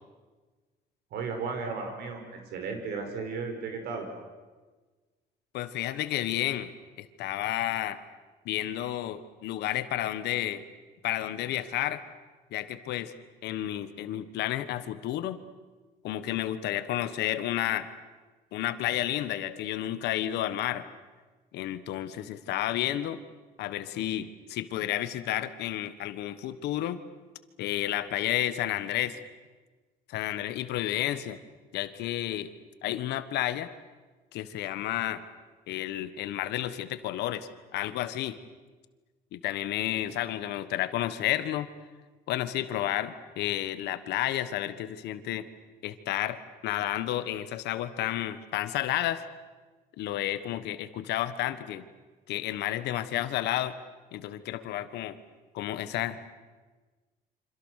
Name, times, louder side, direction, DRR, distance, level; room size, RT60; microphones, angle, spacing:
voice 1, 1.1-4.1, right 4 dB, 75° right, 5 dB, 5.6 m, -35 dB
voice 2, 5.5-6.7 7.0-8.0 8.4-10.6 11.0-12.0 12.5-13.1 13.4-15.4 16.0-17.9 18.5-20.9 21.5-23.2 23.6-27.0 27.6-29.2 30.1-31.4 31.7-32.5 32.8-33.7 34.3-35.2 35.7-38.4 39.3-41.7 42.3-45.5 45.8-49.2 50.0-51.9 52.3-53.7 54.1-55.2 55.5-56.3, left 13 dB, 80° left, 12 dB, 1.5 m, -31 dB
28.0 x 26.0 x 6.6 m, 1.3 s
cardioid pair, 110°, 17 cm